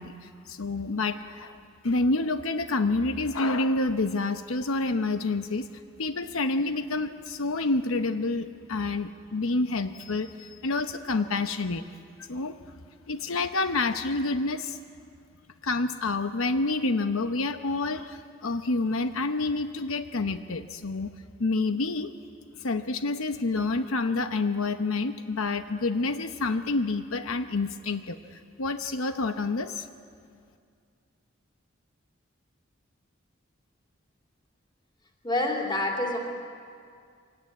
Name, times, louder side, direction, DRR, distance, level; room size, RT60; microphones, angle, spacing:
voice 1, 0.0-1.6 1.8-5.7 6.0-11.8 12.3-12.6 13.1-14.8 15.6-21.1 21.4-22.1 22.5-29.9, left 3 dB, 85° left, 8 dB, 0.9 m, -28 dB
voice 2, 35.2-36.2, left 1 dB, 20° left, 0 dB, 3.0 m, -27 dB
24.5 x 17.0 x 9.5 m, 2.2 s
head